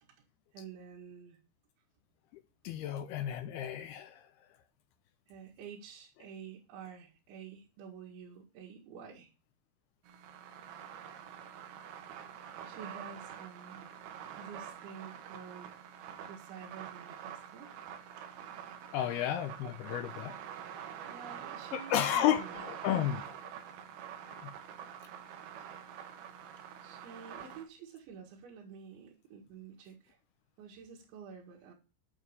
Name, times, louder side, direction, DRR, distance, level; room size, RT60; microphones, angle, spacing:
voice 1, 0.5-1.4 2.7-2.8 5.3-9.3 12.6-15.9 16.3-17.7 18.2-18.3 19.6-19.8 21.1-22.6 26.6-30.2 30.6-31.7, right 6 dB, 85° right, 4.2 m, -50 dB
voice 2, 2.6-4.2 18.9-20.4 21.7-23.3 24.3-24.5, left 11 dB, 80° left, 2.4 m, -32 dB
sound 1, 10.1-27.6, right 9 dB, 70° right, 2.9 m, -46 dB
9.0 x 6.3 x 8.4 m
omnidirectional pair, 5.2 m